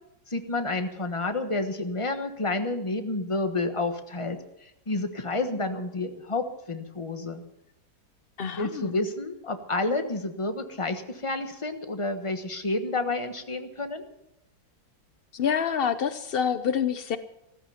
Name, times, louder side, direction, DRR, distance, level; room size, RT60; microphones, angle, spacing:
voice 1, 0.3-7.4 8.6-14.0, left 2 dB, 20° left, 7 dB, 1.1 m, -30 dB
voice 2, 8.4-9.1 15.3-17.2, left 7 dB, 90° left, 12 dB, 0.5 m, -27 dB
14.5 x 14.0 x 5.7 m, 0.86 s
omnidirectional pair, 2.0 m